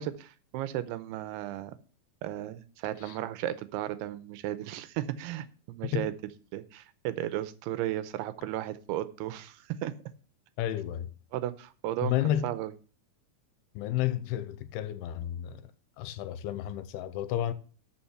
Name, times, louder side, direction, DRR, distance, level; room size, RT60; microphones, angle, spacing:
voice 1, 0.0-1.7 2.2-6.1 6.5-9.9 11.3-12.7, right 13 dB, 90° right, 2.8 m, -35 dB
voice 2, 10.6-11.1 12.0-12.5 13.7-15.7 16.0-17.5, left 12 dB, 90° left, 2.7 m, -31 dB
13.0 x 6.0 x 4.4 m
omnidirectional pair, 4.6 m